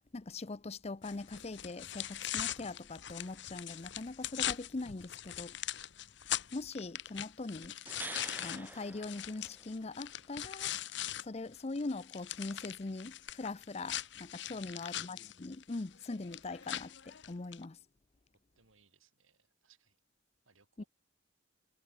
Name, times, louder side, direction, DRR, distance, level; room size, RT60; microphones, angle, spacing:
voice 1, 0.1-5.6 6.5-7.8 8.4-10.8 11.2-17.8 20.8-20.9, left 3 dB, 30° left, 0.6 m, -42 dB
sound 1, 1.0-11.2 11.6-17.6, left 12 dB, 60° left, 1.1 m, -41 dB
sound 2, 7.6-9.9 13.3-13.4, right 2 dB, 10° right, 1.1 m, -47 dB
voice 2, 14.4-14.9 18.5-20.0 20.5-20.9, right 4 dB, 85° right, 4.5 m, -68 dB
head